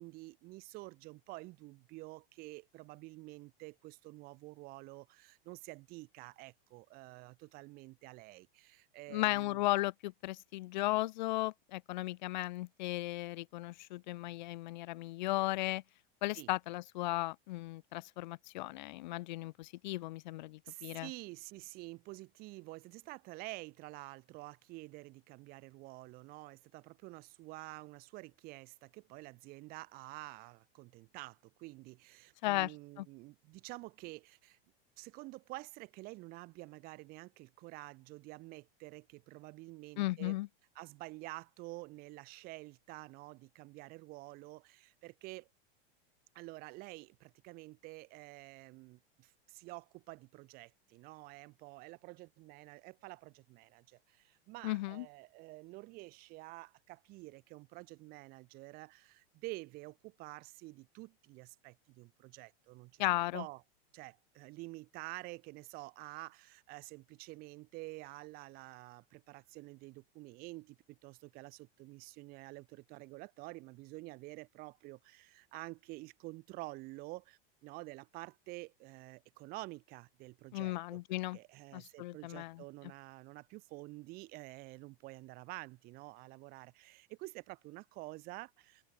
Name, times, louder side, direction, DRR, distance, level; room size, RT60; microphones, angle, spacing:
voice 1, 0.0-9.6 16.3-16.5 20.6-34.6 35.0-40.4 40.8-45.5 46.3-63.1 63.3-63.6 63.9-81.0 81.3-88.8, right 22 dB, 30° right, 2.5 m, -49 dB
voice 2, 9.1-15.8 16.2-21.1 32.4-32.7 33.0-33.1 40.0-40.5 54.6-55.1 63.0-63.4 80.5-81.4 81.7-82.6, left 18 dB, 50° left, 0.5 m, -36 dB
open air
supercardioid pair, 175°, 29 cm